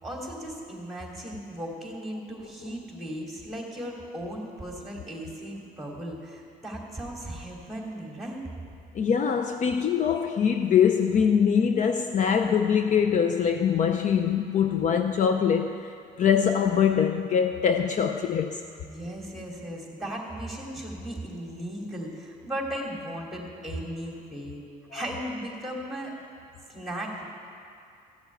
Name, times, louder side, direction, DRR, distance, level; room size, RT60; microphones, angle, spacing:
voice 1, 0.0-8.5 18.8-24.6 24.9-26.2 26.7-27.2, right 1 dB, ahead, 2.9 m, -36 dB
voice 2, 8.9-18.6 24.9-25.0, left 7 dB, 45° left, 0.6 m, -23 dB
14.5 x 7.1 x 9.1 m
cardioid pair, 110°, 17 cm